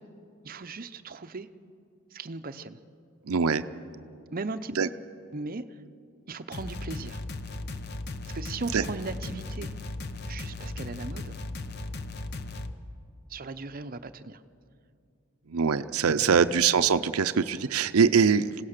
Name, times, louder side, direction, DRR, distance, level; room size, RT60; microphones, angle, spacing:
voice 1, 0.4-1.5 2.1-2.8 4.3-4.9 5.3-5.6 6.3-7.2 8.3-9.7 10.3-11.3 13.3-14.4 16.1-16.3, right 3 dB, 40° right, 11 dB, 0.7 m, -37 dB
voice 2, 3.3-3.6 4.8-4.9 8.7-8.8 15.5-18.6, right 6 dB, 85° right, 11 dB, 0.6 m, -23 dB
sound 1, 6.5-12.7, left 2 dB, 50° left, 0.9 m, -37 dB
26.5 x 16.5 x 6.6 m, 2.5 s
head